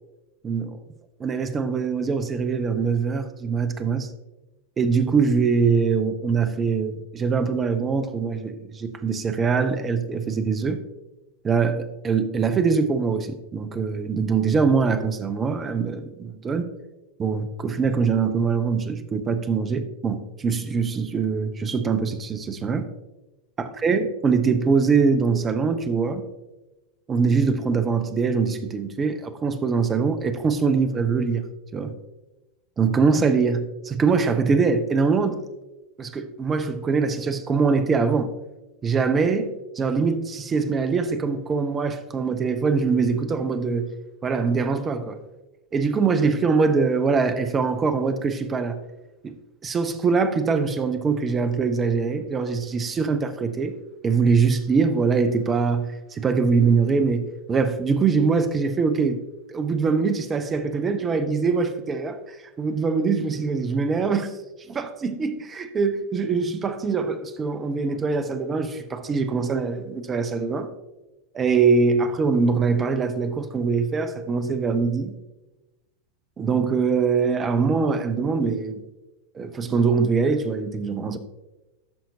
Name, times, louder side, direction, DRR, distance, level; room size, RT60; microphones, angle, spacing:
voice 1, 0.4-0.8 1.2-4.1 4.8-10.8 11.4-16.7 17.2-22.9 23.6-26.2 27.1-31.5 31.7-32.0 32.8-35.4 36.0-38.3 38.8-43.9 44.2-45.2 45.7-48.8 49.2-49.4 49.6-53.8 54.0-59.2 59.5-62.2 62.6-64.3 64.7-70.7 71.3-75.1 76.4-78.8 79.3-81.2, right 5 dB, 20° right, 0.7 m, -23 dB
13.0 x 5.8 x 2.7 m
figure-of-eight pair, 90°, 0 cm